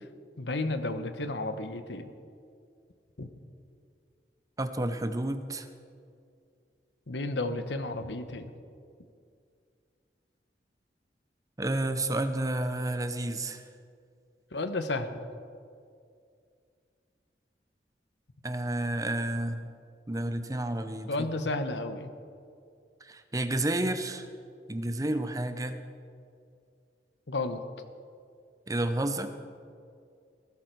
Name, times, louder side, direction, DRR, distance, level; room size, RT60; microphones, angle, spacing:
voice 1, 0.4-2.1 3.2-3.3 7.1-8.5 14.5-15.3 21.1-22.1 27.3-27.6, left 2 dB, 85° left, 9 dB, 1.1 m, -32 dB
voice 2, 4.6-5.7 11.6-13.6 18.4-19.7 20.1-21.1 23.0-24.3 24.7-25.8 28.7-29.3, right 1 dB, 20° right, 9 dB, 0.8 m, -30 dB
20.0 x 13.0 x 4.7 m, 2.3 s
head